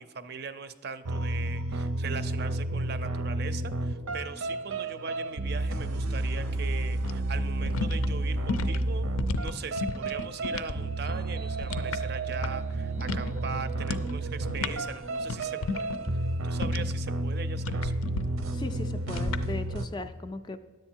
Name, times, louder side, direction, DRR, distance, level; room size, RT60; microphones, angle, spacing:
voice 1, 0.0-9.1 9.4-16.0 16.4-17.9, right 5 dB, 50° right, 13 dB, 0.4 m, -40 dB
sound 1, 1.0-19.9, right 2 dB, 90° right, 0.6 m, -31 dB
sound 2, 7.0-10.8 11.1-12.7 13.0-13.4 13.8-14.1 14.4-17.0 17.6-18.2 19.1-19.4, left 4 dB, 90° left, 0.5 m, -34 dB
voice 2, 18.5-20.6, left 2 dB, 20° left, 9 dB, 0.3 m, -37 dB
10.5 x 7.9 x 4.5 m, 1.4 s
head